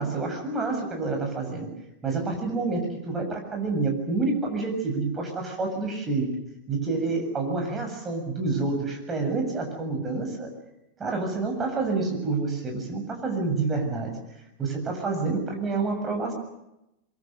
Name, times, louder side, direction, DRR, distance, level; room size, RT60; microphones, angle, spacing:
voice 1, 0.0-1.7 2.0-6.3 6.7-10.5 11.0-16.3, right 3 dB, 20° right, 3 dB, 7.5 m, -28 dB
24.0 x 23.0 x 7.9 m, 0.88 s
figure-of-eight pair, 90°, 0 cm